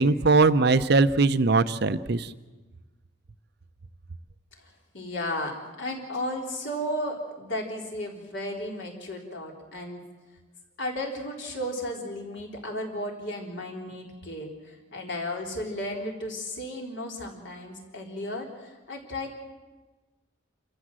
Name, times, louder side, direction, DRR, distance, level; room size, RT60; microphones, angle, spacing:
voice 1, 0.0-2.3, right 3 dB, 55° right, 13 dB, 0.7 m, -21 dB
voice 2, 4.9-10.0 10.8-19.4, left 1 dB, 60° left, 0 dB, 4.0 m, -34 dB
28.0 x 14.5 x 7.6 m, 1.3 s
head